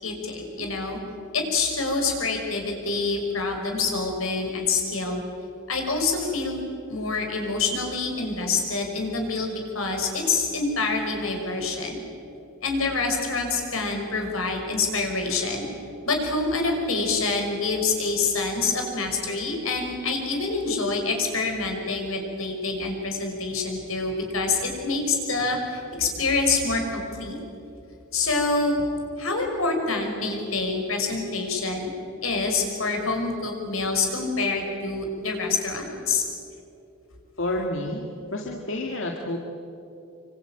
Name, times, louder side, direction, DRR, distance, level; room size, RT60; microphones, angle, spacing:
voice 1, 0.0-1.0 1.3-5.2 5.7-6.6 6.9-12.0 12.6-15.7 16.0-27.4 28.1-28.8 29.2-31.9 32.2-36.2, left 3 dB, 90° left, 3 dB, 5.9 m, -26 dB
voice 2, 37.4-39.4, left 1 dB, 65° left, 0 dB, 2.3 m, -29 dB
26.0 x 25.0 x 9.1 m, 2.8 s
head